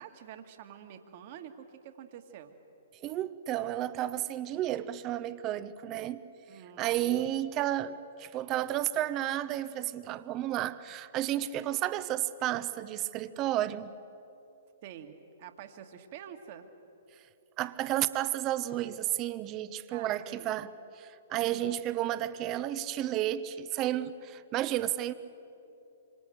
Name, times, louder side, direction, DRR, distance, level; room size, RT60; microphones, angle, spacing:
voice 1, 0.0-2.5 6.5-7.2 14.8-16.7 19.9-20.5 21.3-21.8, right 9 dB, 45° right, 2.2 m, -48 dB
voice 2, 3.0-6.2 6.8-13.9 17.6-20.7 21.0-25.1, right 13 dB, 30° right, 1.1 m, -32 dB
27.5 x 25.5 x 8.1 m
figure-of-eight pair, 120°, 0 cm